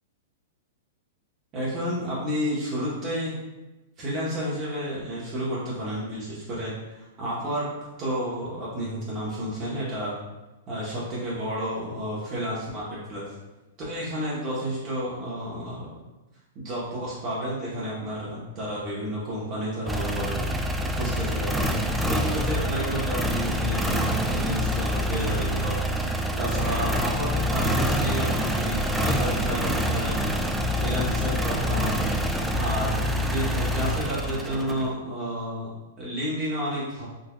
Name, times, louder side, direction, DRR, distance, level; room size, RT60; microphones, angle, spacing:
voice 1, 1.5-3.3 4.0-7.7 8.0-10.2 10.7-13.2 13.9-16.1 16.5-20.4 20.9-21.7 22.0-25.7 26.4-30.2 30.8-32.1 32.6-35.7 36.0-37.0, equal, 35° right, -7 dB, 1.0 m, -31 dB
sound 1, 19.9-34.9, equal, 5° right, 0.3 m, -26 dB
3.9 x 2.6 x 2.3 m, 1.1 s
hypercardioid pair, 115°, 0 cm